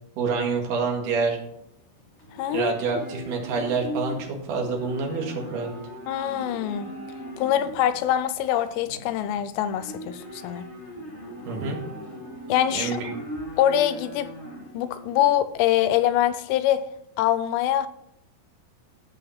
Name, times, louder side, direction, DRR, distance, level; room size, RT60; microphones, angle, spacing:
voice 1, 0.2-1.4 2.5-5.7 11.4-11.8 12.7-13.2, right 4 dB, 55° right, 3.2 m, -27 dB
Livestock farm animals working animals, 1.3-16.0, equal, 35° left, 1.0 m, -40 dB
voice 2, 2.4-2.7 6.1-6.9 7.4-10.7 12.5-13.1 13.6-14.3 14.7-16.9 17.2-17.9, left 11 dB, 85° left, 2.8 m, -24 dB
14.5 x 5.7 x 5.8 m
omnidirectional pair, 4.9 m